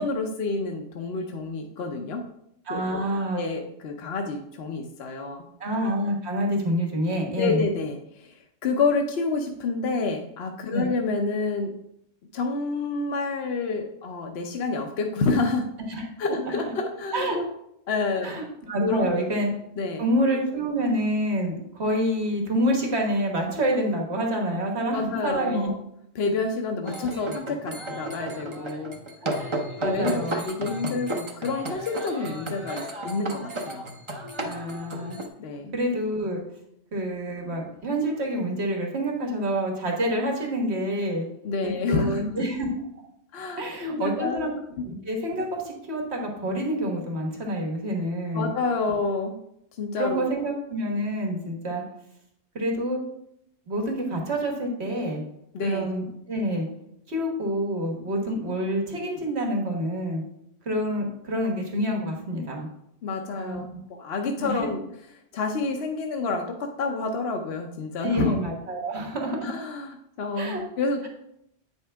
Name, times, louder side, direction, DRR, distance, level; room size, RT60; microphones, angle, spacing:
voice 1, 0.0-2.2 2.7-3.0 3.3-5.4 7.3-11.7 12.3-15.7 16.2-17.5 17.9-18.4 18.8-19.2 19.8-20.0 24.9-25.7 26.1-29.0 29.8-33.9 35.4-35.7 41.4-42.2 43.3-44.5 48.3-49.3 49.7-50.4 55.5-55.9 63.0-63.6 63.9-64.8 65.3-68.3 69.4-71.1, left 3 dB, 65° left, 3 dB, 0.9 m, -28 dB
voice 2, 2.7-3.5 5.6-7.6 10.7-10.9 15.9-16.0 16.4-16.5 17.1-17.4 18.2-19.5 20.0-25.7 29.2-30.5 34.4-35.2 35.7-36.4 36.9-41.3 41.6-42.7 43.6-44.5 44.8-48.5 50.0-51.8 52.5-53.0 53.7-55.2 55.6-56.7 57.1-60.2 60.6-62.7 63.3-63.8 64.3-64.7 68.0-69.6 70.4-70.6, equal, 70° right, 1 dB, 1.7 m, -27 dB
sound 1, 26.9-35.3, right 1 dB, 30° right, 0.8 m, -33 dB
8.7 x 5.6 x 3.4 m, 0.77 s
omnidirectional pair, 1.2 m